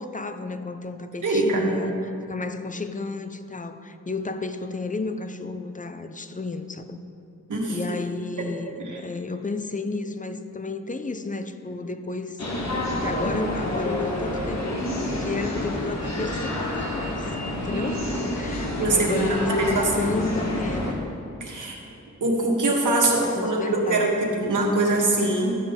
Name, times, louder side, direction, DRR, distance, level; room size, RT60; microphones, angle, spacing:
voice 1, 0.0-7.0 7.7-12.4 13.0-17.3 17.5-21.0 23.2-24.1, left 3 dB, 25° left, 9 dB, 0.5 m, -32 dB
voice 2, 1.2-1.7 7.5-8.0 8.4-8.5 8.8-9.0 18.8-20.2 21.4-21.8 22.2-25.6, right 2 dB, 80° right, -2 dB, 1.6 m, -23 dB
sound 1, 12.4-20.9, left 1 dB, 60° left, 1.5 m, -28 dB
13.0 x 7.0 x 3.7 m, 2.7 s
wide cardioid pair, 100°, 30 cm